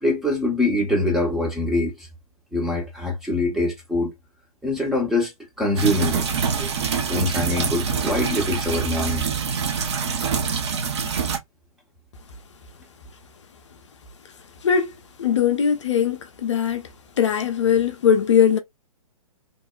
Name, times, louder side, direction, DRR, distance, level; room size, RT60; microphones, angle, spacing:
voice 1, 0.0-2.1 2.5-4.1 4.6-5.3 5.6-6.3 6.5-6.7 7.0-9.3, left 1 dB, ahead, 0.6 m, -24 dB
sound 1, 5.8-11.4, right 6 dB, 50° right, 0.6 m, -25 dB
voice 2, 14.6-14.9 15.2-16.8 17.2-18.6, left 8 dB, 50° left, 0.5 m, -20 dB
2.9 x 2.1 x 2.2 m
figure-of-eight pair, 120°, 19 cm